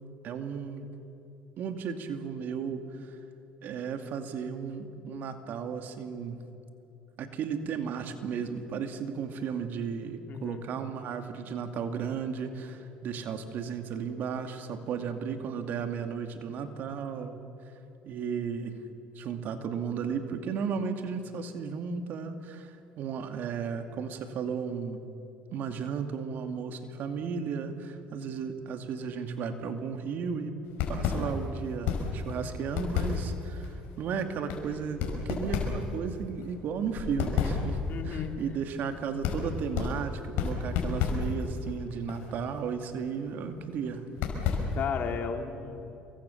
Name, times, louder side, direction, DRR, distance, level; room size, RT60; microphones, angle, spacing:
voice 1, 0.2-0.9 1.6-3.2 3.6-6.4 7.2-17.4 18.0-18.7 19.2-25.0 25.5-30.6 30.9-37.8 38.0-44.0, right 6 dB, 60° right, 7 dB, 2.5 m, -34 dB
voice 2, 10.3-10.6 37.9-38.3 44.7-46.0, left 6 dB, 55° left, 5 dB, 3.3 m, -34 dB
sound 1, 30.7-45.1, left 5 dB, 70° left, 5.4 m, -33 dB
28.0 x 23.5 x 7.2 m, 2.8 s
supercardioid pair, 75°, 4 cm